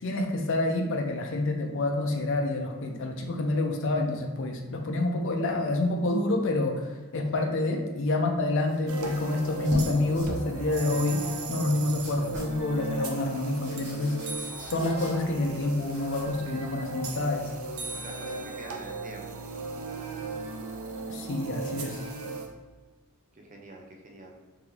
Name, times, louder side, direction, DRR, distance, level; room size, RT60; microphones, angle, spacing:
voice 1, 0.0-14.2 14.7-17.5 21.1-22.0, left 2 dB, 60° left, 2 dB, 0.5 m, -28 dB
sound 1, 8.6-9.0 9.5-9.9 10.1-10.3 11.2-11.3 12.0-12.6 13.3-15.5 15.8-16.4, equal, 55° right, 1.4 m, -41 dB
sound 2, 8.9-22.5, right 3 dB, 80° right, 0.6 m, -37 dB
voice 2, 17.9-19.4 23.3-24.3, right 2 dB, 35° right, 1 dB, 0.6 m, -46 dB
3.6 x 2.9 x 3.1 m, 1.3 s
head